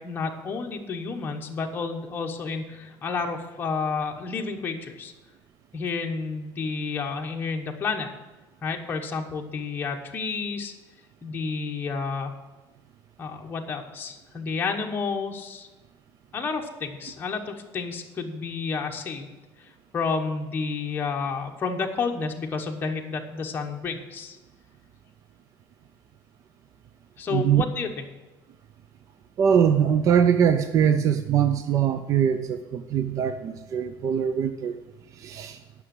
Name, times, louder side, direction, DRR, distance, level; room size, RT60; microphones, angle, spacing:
voice 1, 0.0-5.1 5.7-8.1 8.6-10.7 11.2-12.3 13.2-15.7 16.3-19.3 19.6-19.7 19.9-24.4 27.2-28.0, left 4 dB, 25° left, 2 dB, 1.1 m, -30 dB
voice 2, 27.3-27.6 29.4-34.8 35.2-35.6, right 8 dB, 40° right, 10 dB, 0.4 m, -22 dB
9.8 x 6.1 x 7.6 m, 1.1 s
cardioid pair, 165°, 9 cm